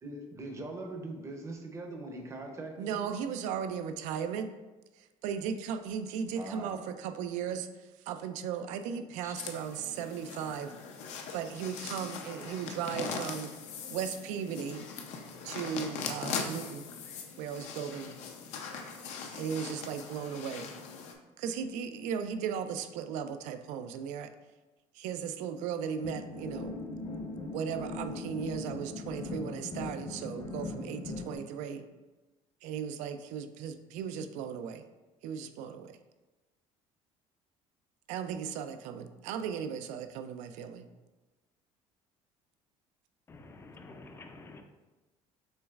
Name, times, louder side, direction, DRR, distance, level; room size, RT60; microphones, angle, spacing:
voice 1, 0.0-3.1 6.4-6.7 9.2-9.3 13.0-13.2, right 2 dB, 25° right, 3 dB, 0.6 m, -41 dB
voice 2, 2.8-4.5 5.2-7.7 8.1-10.7 11.3-13.5 13.9-14.9 15.4-16.9 17.4-18.1 19.3-20.7 21.4-24.3 25.0-26.7 27.5-31.8 32.6-34.8 35.2-36.0 38.1-40.9, right 7 dB, 80° right, 9 dB, 0.4 m, -36 dB
sound 1, 9.3-21.1, left 5 dB, 70° left, 0.6 m, -41 dB
sound 2, 26.0-31.4, left 2 dB, 45° left, 1.0 m, -39 dB
voice 3, 43.3-44.6, left 3 dB, 20° left, 6 dB, 0.4 m, -49 dB
6.4 x 3.0 x 2.4 m, 1.2 s
cardioid pair, 135°, 12 cm